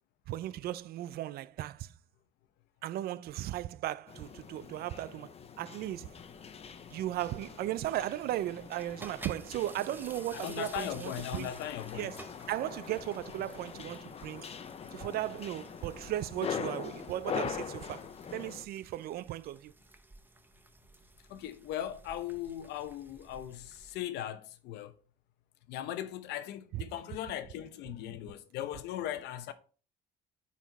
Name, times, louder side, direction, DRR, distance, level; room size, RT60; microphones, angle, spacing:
voice 1, 0.3-1.9 2.8-6.1 6.9-11.5 11.9-12.2 12.5-14.5 14.9-18.1 18.3-19.7 26.7-26.8, right 13 dB, 65° right, 0.4 m, -36 dB
sound 1, 4.1-18.7, left 7 dB, 35° left, 0.7 m, -43 dB
sound 2, 5.8-24.0, right 2 dB, 10° right, 0.8 m, -55 dB
voice 2, 10.3-12.1 21.3-24.9 25.7-29.5, left 11 dB, 85° left, 0.8 m, -38 dB
8.9 x 4.2 x 4.0 m
cardioid pair, 110°, 17 cm